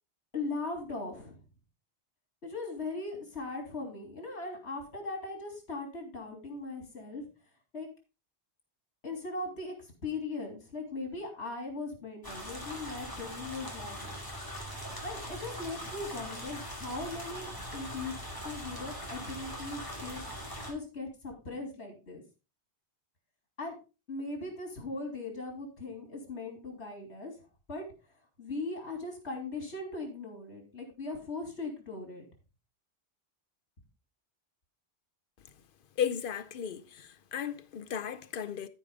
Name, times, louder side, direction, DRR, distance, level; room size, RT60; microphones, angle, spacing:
voice 1, 0.3-1.4 2.4-7.3 7.7-7.9 9.0-14.1 15.0-20.4 20.7-22.2 23.6-23.7 24.1-27.3 27.7-27.8 28.4-32.3, left 3 dB, 75° left, 3.4 m, -39 dB
sound 1, 12.2-20.7, equal, 20° left, 2.4 m, -41 dB
voice 2, 36.0-38.7, left 8 dB, 55° left, 0.8 m, -35 dB
14.0 x 5.0 x 3.6 m
omnidirectional pair, 1.1 m